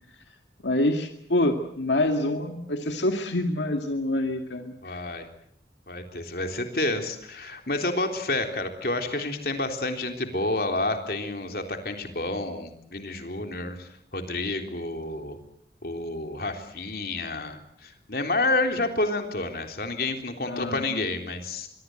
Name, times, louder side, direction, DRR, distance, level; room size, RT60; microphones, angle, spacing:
voice 1, 0.6-5.0 20.4-21.1, left 1 dB, 85° left, 5 dB, 2.2 m, -26 dB
voice 2, 4.8-5.3 5.9-15.4 15.8-21.7, left 2 dB, 55° left, 5 dB, 3.6 m, -29 dB
25.0 x 23.5 x 7.9 m, 0.69 s
head